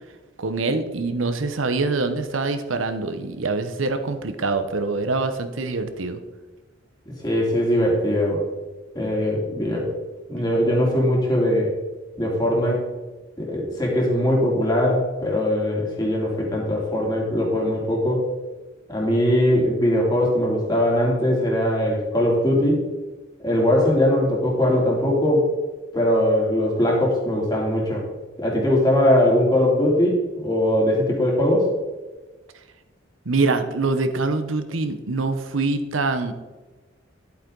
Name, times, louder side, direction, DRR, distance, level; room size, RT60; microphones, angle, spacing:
voice 1, 0.4-6.2 33.3-36.3, right 3 dB, 85° right, 8 dB, 0.9 m, -24 dB
voice 2, 7.2-8.4 8.9-9.9 10.3-11.7 12.2-12.8 13.4-18.2 18.9-22.8 23.4-25.5 25.9-28.0 28.4-31.7, left 1 dB, 20° left, -3 dB, 2.8 m, -20 dB
11.0 x 8.3 x 3.9 m, 1.2 s
head